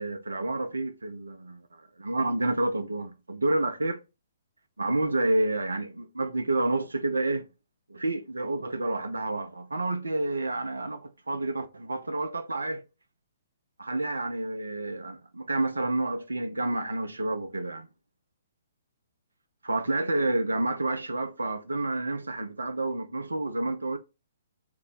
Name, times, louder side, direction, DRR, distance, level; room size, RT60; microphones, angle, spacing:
voice 1, 0.0-4.0 4.8-7.5 7.9-12.8 13.8-17.9 19.6-24.0, right 2 dB, 75° right, 0.4 m, -29 dB
2.6 x 2.0 x 3.8 m
figure-of-eight pair, 120°, 0 cm